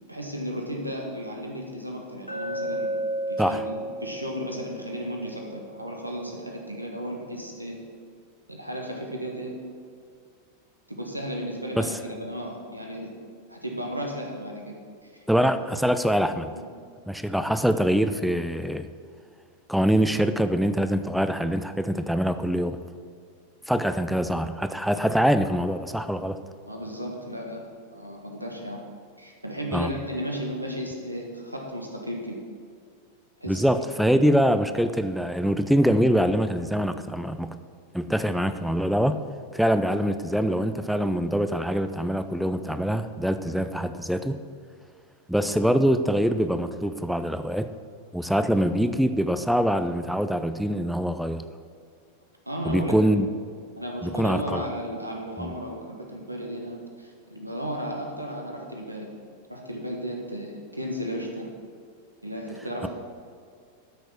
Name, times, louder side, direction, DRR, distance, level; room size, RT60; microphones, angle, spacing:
voice 1, 0.1-2.9 3.3-7.8 8.5-9.5 10.9-13.1 13.5-15.1 16.5-16.7 26.7-27.6 27.9-28.8 29.2-32.4 33.4-33.7 34.1-34.3 52.5-53.0 53.8-59.1 59.5-61.5 62.2-62.9, equal, 85° right, 0 dB, 1.6 m, -34 dB
Glass, 2.3-6.4, right 1 dB, 90° left, 1.7 m, -33 dB
voice 2, 15.3-16.5 17.1-18.9 19.7-22.8 23.7-26.4 29.7-29.9 33.5-37.6 37.9-39.2 39.5-44.4 45.3-47.7 48.1-51.4 52.7-53.3 54.0-54.6 55.4-55.5, equal, ahead, 10 dB, 0.6 m, -24 dB
13.0 x 6.3 x 6.2 m, 2.2 s
figure-of-eight pair, 90°, 0 cm